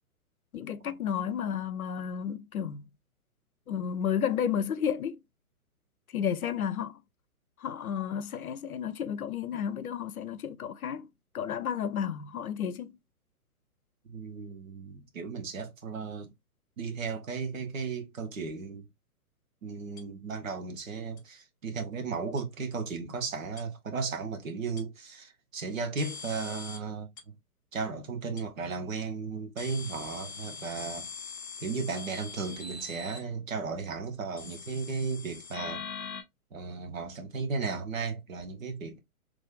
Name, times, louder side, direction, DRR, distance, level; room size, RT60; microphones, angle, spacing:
voice 1, 0.5-2.8 3.7-5.2 6.1-7.0 7.6-11.1 11.3-13.0, left 8 dB, 75° left, 0.7 m, -32 dB
voice 2, 14.1-16.3 16.8-18.9 19.6-27.3 27.7-31.1 31.6-35.8 36.5-39.0, right 4 dB, 60° right, 1.2 m, -35 dB
sound 1, 20.0-20.1 21.2-21.3 22.4-22.5 23.6-23.7 24.8-24.9 26.0-26.8 27.2-27.3 28.4-28.5 29.6-33.2 34.4-36.2, left 5 dB, 15° left, 0.4 m, -42 dB
3.2 x 2.5 x 3.6 m
figure-of-eight pair, 125°, 44 cm